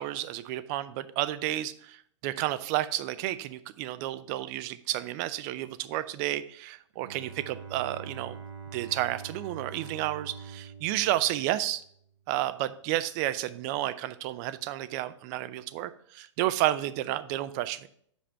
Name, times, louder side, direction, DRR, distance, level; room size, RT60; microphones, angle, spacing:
voice 1, 0.0-2.0 2.2-8.4 8.7-11.8 12.3-17.8, right 14 dB, 35° right, 13 dB, 0.5 m, -31 dB
Bowed string instrument, 7.0-12.2, right 6 dB, 75° right, 1.0 m, -44 dB
7.8 x 5.0 x 4.4 m, 0.64 s
hypercardioid pair, 115°, 16 cm